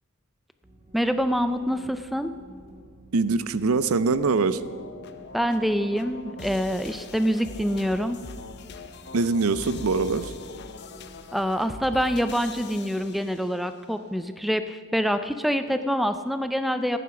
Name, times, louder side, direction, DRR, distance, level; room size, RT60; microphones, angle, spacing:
sound 1, 0.6-12.7, right 1 dB, 30° right, 1.6 m, -51 dB
voice 1, 0.9-2.3 5.3-8.2 11.3-17.0, equal, ahead, 9 dB, 0.3 m, -26 dB
voice 2, 3.1-4.6 9.1-10.3, right 4 dB, 75° right, 14 dB, 0.6 m, -23 dB
sound 2, 4.5-13.8, left 3 dB, 50° left, 0.6 m, -42 dB
14.5 x 9.3 x 5.9 m, 2.1 s
head